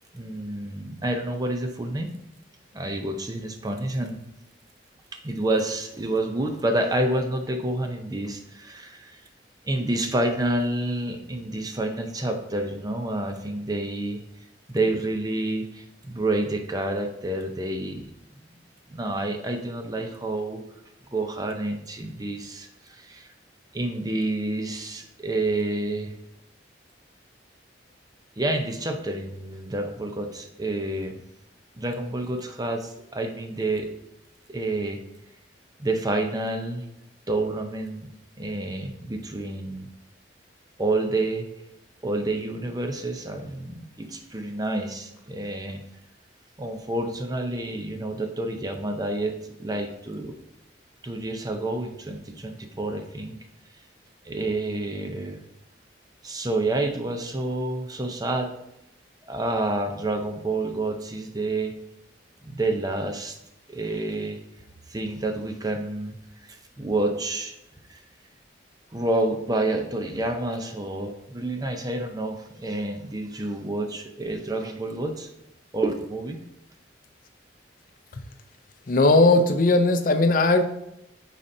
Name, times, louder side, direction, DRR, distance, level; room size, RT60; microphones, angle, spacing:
voice 1, 0.1-2.2 2.7-4.2 5.2-9.2 9.6-14.2 14.7-18.1 18.9-20.6 21.1-23.3 23.7-26.1 28.4-31.2 31.8-33.9 34.5-35.0 35.8-36.8 37.3-38.1 38.4-39.9 40.8-41.5 42.0-45.8 46.6-50.4 51.0-53.4 54.2-55.4 56.2-58.5 59.3-61.7 62.4-63.4 63.7-64.4 64.9-66.2 66.5-67.5 67.9-68.0 68.9-75.3 75.7-76.4, right 2 dB, 20° right, 5 dB, 0.5 m, -28 dB
voice 2, 78.9-80.6, left 2 dB, 45° left, 7 dB, 0.5 m, -18 dB
8.5 x 4.2 x 2.7 m, 0.83 s
head